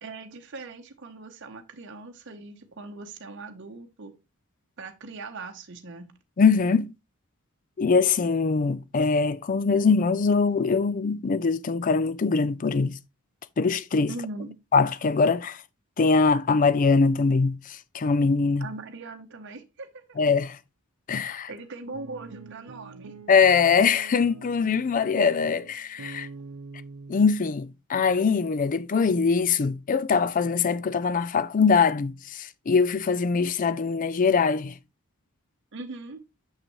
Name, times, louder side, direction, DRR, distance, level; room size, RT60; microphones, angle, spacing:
voice 1, 0.0-4.1 4.8-6.1 14.1-14.6 18.6-20.2 21.5-23.1 35.7-36.2, right 3 dB, 55° right, 0.8 m, -40 dB
voice 2, 6.4-6.9 7.8-12.9 13.6-14.1 14.7-15.6 16.0-18.7 20.2-20.6 21.1-21.5 23.3-26.3 27.1-34.7, left 5 dB, 35° left, 0.4 m, -22 dB
sound 1, 21.8-27.3, right 4 dB, 85° right, 0.6 m, -44 dB
6.5 x 6.3 x 3.0 m
head